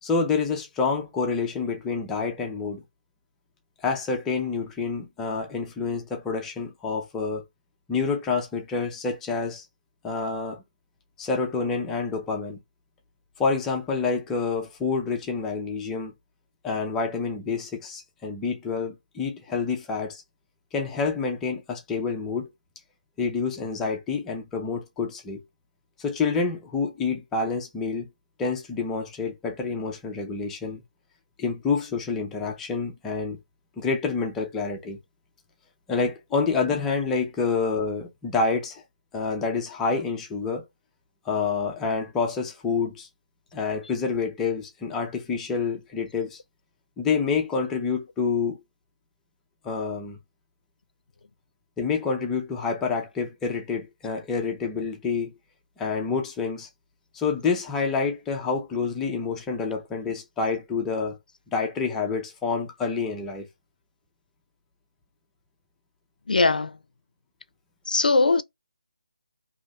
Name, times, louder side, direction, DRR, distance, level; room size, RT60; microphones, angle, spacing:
voice 1, 0.0-2.8 3.8-7.4 7.9-9.7 10.0-10.6 11.2-12.6 13.4-16.1 16.6-20.2 20.7-22.5 23.2-25.4 26.0-28.1 28.4-30.8 31.4-33.4 33.8-35.0 35.9-38.8 39.1-40.7 41.3-43.1 43.5-46.4 47.0-48.6 49.6-50.2 51.8-55.3 55.8-56.7 57.1-61.2 61.5-63.5, left 4 dB, 5° left, 0.4 m, -28 dB
voice 2, 66.3-66.8 67.9-68.4, left 3 dB, 75° left, 0.4 m, -20 dB
2.7 x 2.5 x 3.0 m
figure-of-eight pair, 165°, 5 cm